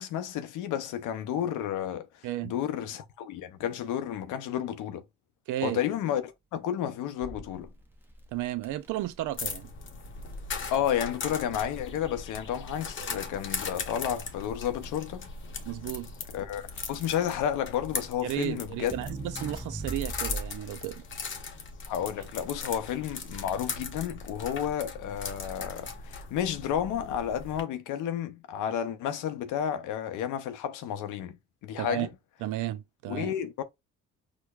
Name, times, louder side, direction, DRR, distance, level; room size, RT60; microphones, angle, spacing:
voice 1, 0.0-5.0 5.6-7.7 10.7-15.3 16.3-19.0 21.9-32.1 33.1-33.6, left 10 dB, 85° left, 0.5 m, -31 dB
voice 2, 2.2-2.5 5.5-5.8 8.3-9.7 13.0-13.1 15.6-16.1 18.2-21.0 31.8-32.1 32.4-33.3, right 14 dB, 80° right, 0.5 m, -33 dB
Crackle, 7.2-20.8, right 2 dB, 5° right, 0.6 m, -43 dB
sound 1, 9.4-27.6, left 4 dB, 40° left, 0.8 m, -39 dB
4.6 x 2.2 x 2.3 m
cardioid pair, 90°, 30 cm